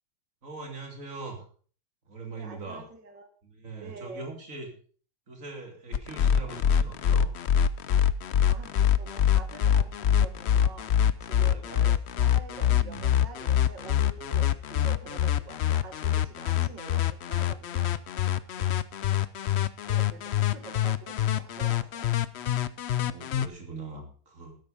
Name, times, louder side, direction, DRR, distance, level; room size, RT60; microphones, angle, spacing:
voice 1, 0.4-1.4 2.1-2.8 3.4-4.7 5.3-7.3 11.3-11.9 12.6-13.2 15.0-15.2 18.5-18.8 22.9-24.6, right 3 dB, 45° right, 4 dB, 3.3 m, -42 dB
voice 2, 2.3-3.3 3.8-4.3 8.5-10.9 11.2-18.0 19.8-22.1, right 4 dB, 70° right, 7 dB, 2.5 m, -46 dB
sound 1, 5.9-23.5, left 10 dB, 80° left, 0.5 m, -24 dB
13.0 x 10.5 x 5.2 m, 0.42 s
omnidirectional pair, 2.0 m